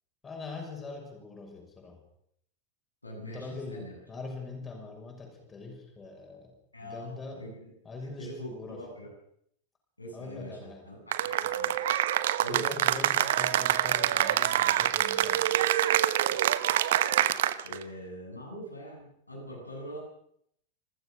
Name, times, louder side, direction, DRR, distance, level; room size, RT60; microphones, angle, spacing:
voice 1, 0.2-2.0 3.2-6.5 6.8-7.5 7.8-8.9 10.1-10.9 12.5-15.5, left 3 dB, 20° left, 2 dB, 6.5 m, -42 dB
voice 2, 3.0-4.0 6.7-7.7 8.2-9.1 10.0-11.7 12.4-12.7 17.6-20.0, equal, 85° left, -1 dB, 7.8 m, -43 dB
Cheering / Applause, 11.1-17.8, right 12 dB, 55° right, 1.0 m, -26 dB
27.0 x 15.0 x 6.5 m, 0.71 s
figure-of-eight pair, 90°, 0 cm